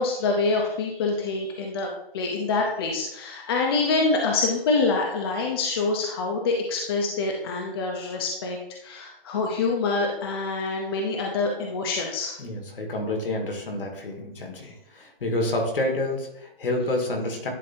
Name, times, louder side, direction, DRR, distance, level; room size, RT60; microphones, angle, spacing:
voice 1, 0.0-1.9 2.1-8.6 8.8-12.3, left 3 dB, 25° left, 0 dB, 0.7 m, -26 dB
voice 2, 12.4-17.5, left 1 dB, 65° left, 2 dB, 1.9 m, -28 dB
10.5 x 3.9 x 2.7 m, 0.79 s
hypercardioid pair, 160°, 29 cm